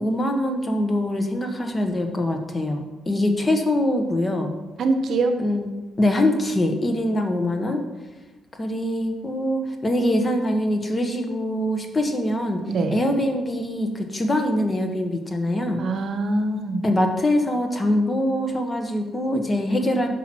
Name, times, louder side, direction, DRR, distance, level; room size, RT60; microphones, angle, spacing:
voice 1, 0.0-4.6 5.4-5.7 6.0-7.8 8.6-12.6 12.9-15.8 16.8-20.1, left 1 dB, 25° left, 4 dB, 1.2 m, -23 dB
voice 2, 4.8-5.4 12.7-13.0 15.8-16.8 20.0-20.1, right 3 dB, 60° right, 7 dB, 0.9 m, -23 dB
6.0 x 5.8 x 6.2 m, 1.1 s
cardioid pair, 90°, 0 cm